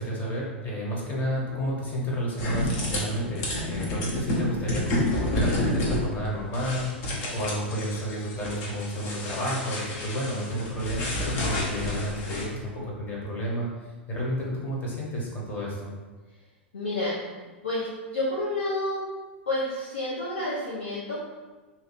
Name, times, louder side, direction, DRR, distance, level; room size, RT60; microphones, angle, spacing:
voice 1, 0.0-15.9, equal, 25° left, -4 dB, 1.2 m, -31 dB
sound 1, 2.4-12.4, left 1 dB, 45° left, 1.0 m, -30 dB
voice 2, 16.7-17.9 18.1-19.0 19.5-21.2, left 2 dB, 75° left, -8 dB, 1.0 m, -29 dB
2.8 x 2.6 x 4.3 m, 1.3 s
figure-of-eight pair, 95°, 6 cm